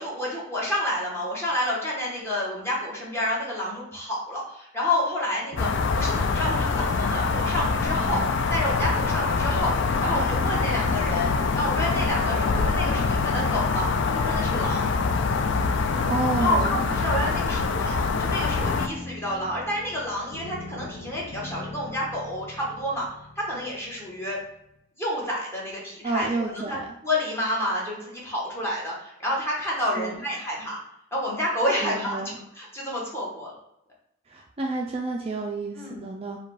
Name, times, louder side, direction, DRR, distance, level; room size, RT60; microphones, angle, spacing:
voice 1, 0.0-14.9 16.4-23.1 23.4-24.4 25.0-26.8 27.0-30.8 31.1-32.2 32.5-33.6 35.7-36.1, left 1 dB, 10° left, -5 dB, 1.2 m, -29 dB
sound 1, 5.5-24.5, left 1 dB, 35° left, 0.7 m, -41 dB
sound 2, 5.6-18.9, left 4 dB, 60° left, 0.4 m, -24 dB
voice 2, 16.1-16.8 26.0-26.8 30.0-30.2 31.8-32.4 34.3-36.4, right 3 dB, 30° right, 0 dB, 0.4 m, -29 dB
4.8 x 2.3 x 4.7 m, 0.82 s
head